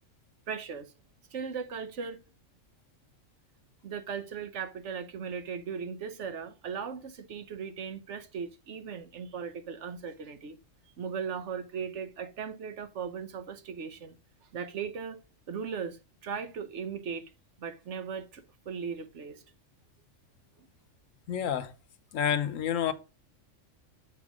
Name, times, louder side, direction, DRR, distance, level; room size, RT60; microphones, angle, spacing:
voice 1, 0.5-0.9 1.3-2.2 3.8-10.6 11.0-14.2 14.5-15.2 15.5-17.3 17.6-19.4 20.6-20.7, right 6 dB, 65° right, 1.2 m, -38 dB
voice 2, 21.3-21.7 22.1-22.9, left 9 dB, 85° left, 1.2 m, -28 dB
7.4 x 4.7 x 4.9 m
omnidirectional pair, 1.3 m